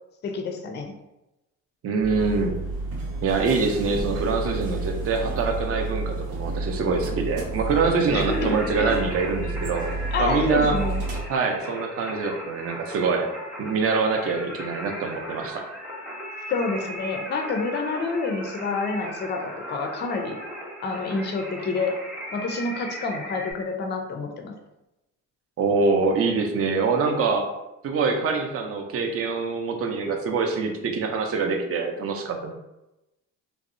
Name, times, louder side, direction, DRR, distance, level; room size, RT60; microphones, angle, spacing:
voice 1, 0.2-0.9 8.1-9.0 10.1-11.0 16.5-20.4 20.8-22.0 22.3-24.5, left 3 dB, 30° left, 4 dB, 0.4 m, -28 dB
voice 2, 1.8-2.5 3.2-9.9 10.2-10.8 11.3-13.3 13.6-15.6 25.6-27.5 27.8-32.5, right 4 dB, 40° right, 3 dB, 0.5 m, -24 dB
sound 1, 2.0-11.2, right 2 dB, 85° right, 0.7 m, -30 dB
Singing, 8.1-23.5, equal, 5° right, 0.7 m, -37 dB
2.6 x 2.0 x 2.5 m, 0.95 s
supercardioid pair, 80°, 34 cm